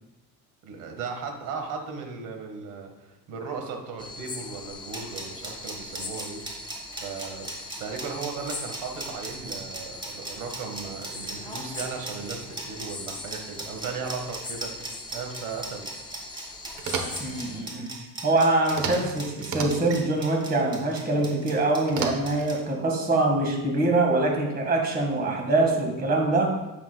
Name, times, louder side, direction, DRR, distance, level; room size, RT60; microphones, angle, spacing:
voice 1, 0.6-6.4 7.0-7.5 7.8-15.8, right 5 dB, 80° right, 4 dB, 1.7 m, -36 dB
sound 1, 4.0-17.6, left 2 dB, 15° left, 0.6 m, -41 dB
sound 2, 4.7-22.6, right 2 dB, 15° right, 1.5 m, -38 dB
sound 3, 16.8-17.4 18.7-19.1 19.4-20.0 21.9-22.5, right 5 dB, 65° right, 1.2 m, -32 dB
voice 2, 17.2-17.9 18.2-26.5, right 2 dB, 30° right, 1 dB, 1.9 m, -24 dB
9.6 x 7.4 x 2.3 m, 1.0 s
cardioid pair, 155°, 32 cm